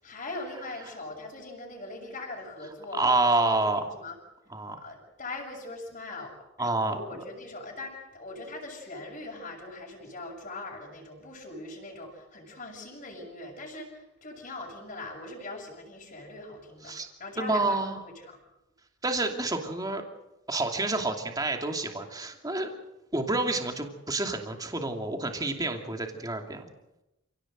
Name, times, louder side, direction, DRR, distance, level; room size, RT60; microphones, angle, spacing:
voice 1, 0.0-3.1 3.4-4.2 4.8-17.8 18.3-18.4, left 2 dB, 40° left, -2 dB, 6.5 m, -41 dB
voice 2, 2.9-3.9 4.5-4.8 6.6-7.2 16.8-17.1 17.4-18.0 19.0-20.0 20.5-22.7 23.1-26.6, right 2 dB, 20° right, 3 dB, 2.7 m, -28 dB
29.0 x 17.0 x 7.9 m, 0.93 s
head